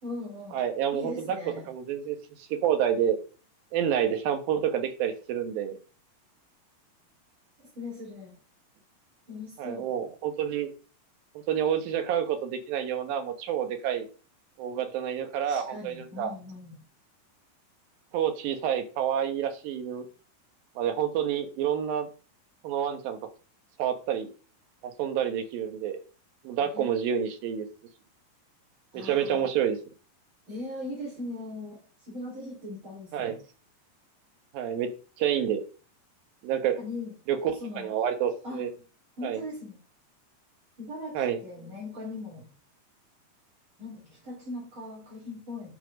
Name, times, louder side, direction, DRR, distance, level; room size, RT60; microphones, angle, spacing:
voice 1, 0.0-0.6 0.9-1.7 7.8-8.4 9.3-9.9 15.5-16.8 26.6-26.9 28.9-29.5 30.5-33.3 36.8-37.2 37.5-38.0 38.4-38.6 39.2-39.8 40.8-42.5 43.8-45.7, left 2 dB, 35° right, -3 dB, 3.8 m, -39 dB
voice 2, 0.5-1.4 1.7-3.2 3.7-5.8 9.6-10.7 11.5-14.1 14.6-16.3 18.1-20.1 20.8-22.1 22.6-23.2 23.8-24.3 24.8-26.0 26.4-27.7 28.9-29.8 33.1-33.4 34.5-34.9 35.2-35.6 36.4-36.8 37.3-38.7 39.2-39.4 41.1-41.4, right 9 dB, 80° right, 7 dB, 3.0 m, -28 dB
10.0 x 5.9 x 5.2 m, 0.38 s
omnidirectional pair, 4.1 m